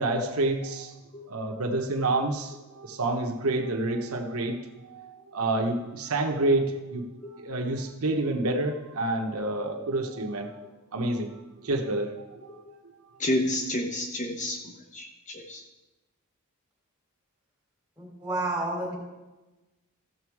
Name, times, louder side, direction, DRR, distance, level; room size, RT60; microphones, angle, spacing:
voice 1, 0.0-1.0 1.3-7.1 7.3-10.6 10.9-12.5 12.8-12.9, right 2 dB, 75° right, 2 dB, 1.1 m, -28 dB
voice 2, 13.2-14.6 14.9-15.6, left 1 dB, 35° left, 3 dB, 0.9 m, -29 dB
voice 3, 18.0-18.9, right 2 dB, 5° right, -4 dB, 4.2 m, -30 dB
15.0 x 7.0 x 4.8 m, 1.1 s
head